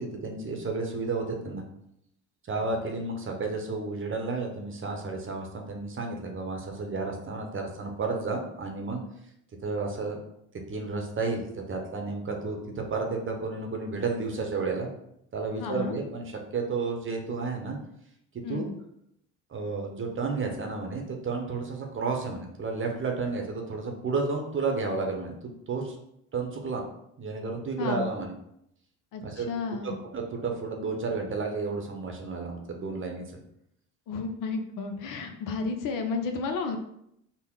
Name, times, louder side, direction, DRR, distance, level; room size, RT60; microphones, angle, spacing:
voice 1, 0.0-1.6 2.5-9.0 9.6-10.2 10.7-14.9 15.3-17.8 18.5-18.7 19.5-26.0 26.3-26.8 27.2-28.3 29.2-29.5 29.8-33.4, right 4 dB, 35° right, 2 dB, 0.8 m, -32 dB
voice 2, 15.6-16.0 18.4-18.7 27.8-28.1 29.1-30.0 34.1-36.8, left 4 dB, 60° left, 5 dB, 0.6 m, -32 dB
3.7 x 2.1 x 3.7 m, 0.76 s
supercardioid pair, 70°, 37 cm